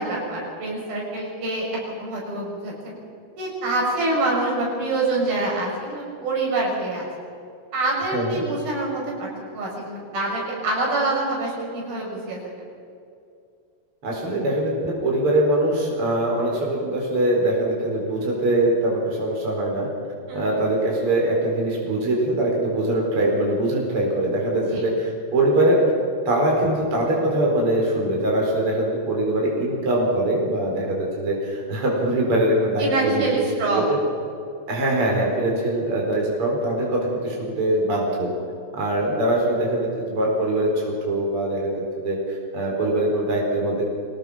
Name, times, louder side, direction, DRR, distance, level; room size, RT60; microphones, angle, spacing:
voice 1, 0.0-3.0 3.4-7.1 7.7-9.3 9.5-12.4 20.3-20.6 24.7-24.9 32.8-33.9, right 2 dB, 90° right, -3 dB, 7.9 m, -26 dB
voice 2, 14.0-19.9 20.3-25.9 26.3-34.0 34.7-38.3 38.7-43.8, right 1 dB, 35° right, -2 dB, 5.3 m, -22 dB
26.5 x 19.0 x 5.7 m, 2.5 s
omnidirectional pair, 4.1 m